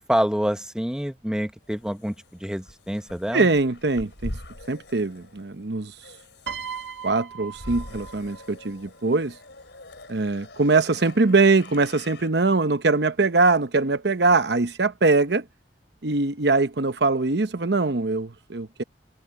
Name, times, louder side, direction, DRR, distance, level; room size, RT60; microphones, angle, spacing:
voice 1, 0.0-2.1 2.4-3.5, equal, 5° right, 0.9 m, -26 dB
sound 1, 1.2-12.3, left 1 dB, 70° left, 5.5 m, -43 dB
voice 2, 3.3-4.3 4.7-5.9 7.0-9.4 10.1-15.4 16.0-18.8, right 3 dB, 65° right, 0.9 m, -22 dB
Piano, 6.5-8.8 9.9-10.1, right 6 dB, 90° right, 1.9 m, -38 dB
head